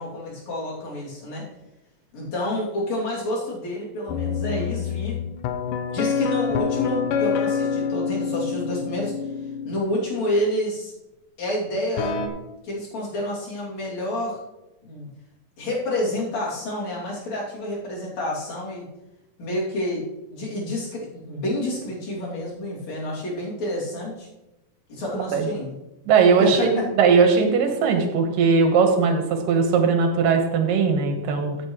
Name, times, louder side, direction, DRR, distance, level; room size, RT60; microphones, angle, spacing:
voice 1, 0.0-1.5 2.1-5.2 5.9-9.1 9.6-10.9 11.4-12.1 12.6-14.4 14.8-15.1 15.6-18.9 19.4-20.0 20.3-24.3 24.9-25.8 26.4-26.9, left 1 dB, 55° left, -5 dB, 4.1 m, -29 dB
sound 1, 4.1-9.8 12.0-12.3, left 6 dB, 75° left, 2.4 m, -26 dB
voice 2, 26.1-31.6, right 5 dB, 80° right, 4 dB, 2.9 m, -19 dB
14.5 x 7.6 x 3.2 m, 0.96 s
omnidirectional pair, 3.9 m